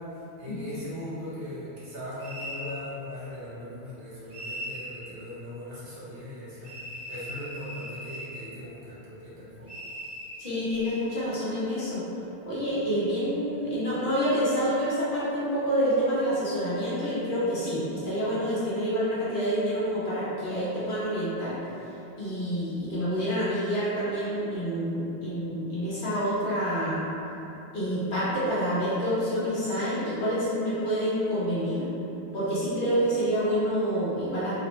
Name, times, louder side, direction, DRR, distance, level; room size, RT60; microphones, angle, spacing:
voice 1, 0.0-9.7, left 1 dB, 60° right, -11 dB, 1.0 m, -39 dB
sound 1, 2.2-2.7 4.3-4.9 6.6-8.3 9.7-11.1, equal, 20° right, 0.4 m, -39 dB
voice 2, 10.4-12.0 12.5-21.5 22.2-27.0 27.7-31.8 32.3-34.5, equal, 55° left, -11 dB, 0.9 m, -27 dB
2.5 x 2.1 x 3.0 m, 2.9 s
omnidirectional pair, 1.1 m